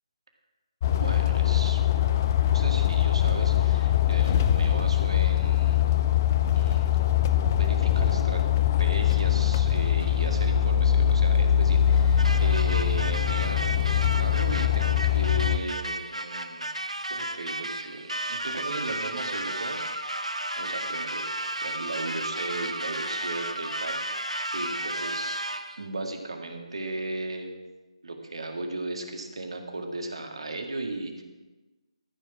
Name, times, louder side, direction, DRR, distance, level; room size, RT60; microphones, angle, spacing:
sound 1, 0.8-15.6, left 10 dB, 30° left, 0.6 m, -22 dB
voice 1, 0.9-1.8 2.5-5.9 6.5-7.0 7.5-8.5 8.8-16.7 17.1-20.0 20.6-25.4 25.8-27.5 28.0-31.2, right 2 dB, 60° right, 4 dB, 1.8 m, -36 dB
sound 2, 12.2-25.8, right 1 dB, 85° right, 0.9 m, -33 dB
14.0 x 6.5 x 5.9 m, 1.2 s
figure-of-eight pair, 145°, 3 cm